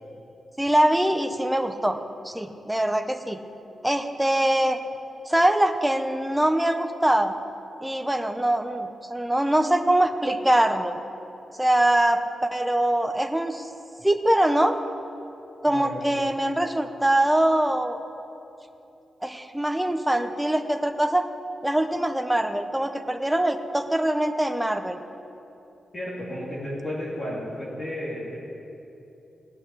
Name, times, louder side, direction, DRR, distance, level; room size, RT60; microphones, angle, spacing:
voice 1, 0.6-2.0 2.2-3.4 3.8-4.8 5.3-7.3 7.8-11.0 11.6-13.7 14.0-14.8 15.6-18.0 19.2-21.2 21.6-25.0, right 1 dB, 5° right, 6 dB, 0.7 m, -23 dB
voice 2, 15.6-16.1 25.9-28.4, equal, 25° left, -7 dB, 2.6 m, -33 dB
16.5 x 6.3 x 9.4 m, 2.9 s
wide cardioid pair, 160°, 0 cm